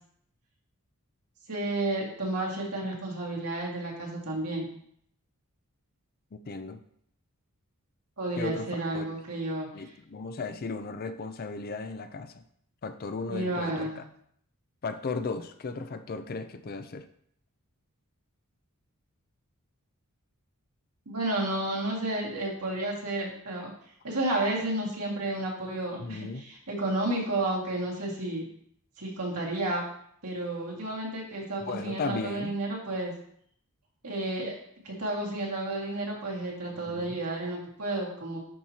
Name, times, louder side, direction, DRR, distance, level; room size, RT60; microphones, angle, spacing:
voice 1, 1.5-4.7 8.2-9.7 13.3-14.0 21.1-23.7 24.0-28.5 29.0-29.8 30.2-33.1 34.0-34.6 34.8-38.4, right 2 dB, 90° right, -3 dB, 2.0 m, -31 dB
voice 2, 6.3-6.8 8.4-9.1 9.7-12.4 12.8-14.0 14.8-17.1 26.0-26.4 31.7-32.5 36.9-37.2, left 4 dB, 40° left, 10 dB, 0.4 m, -36 dB
10.5 x 4.4 x 2.8 m, 0.67 s
head